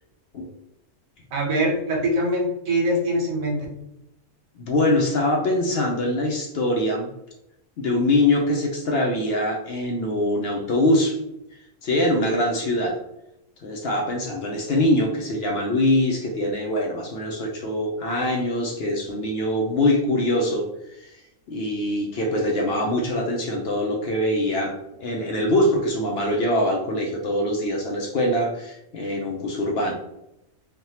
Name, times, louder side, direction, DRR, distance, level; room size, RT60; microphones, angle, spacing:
voice 1, 1.3-3.7, right 1 dB, 90° right, -1 dB, 1.3 m, -23 dB
voice 2, 4.6-7.1 7.8-11.2 11.8-12.9 13.6-20.6 21.0-21.1 21.5-29.9, left 1 dB, 60° left, 1 dB, 0.7 m, -23 dB
3.3 x 2.2 x 2.8 m, 0.86 s
omnidirectional pair, 1.4 m